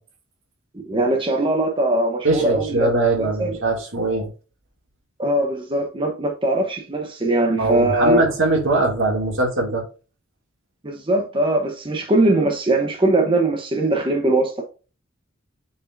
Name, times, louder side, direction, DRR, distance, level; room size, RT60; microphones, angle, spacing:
voice 1, 0.7-2.9 3.2-3.6 5.2-8.2 10.8-14.6, right 2 dB, 25° right, 1.0 m, -21 dB
voice 2, 2.2-4.3 7.6-9.8, right 2 dB, 65° right, 2.5 m, -21 dB
8.3 x 4.8 x 2.6 m
head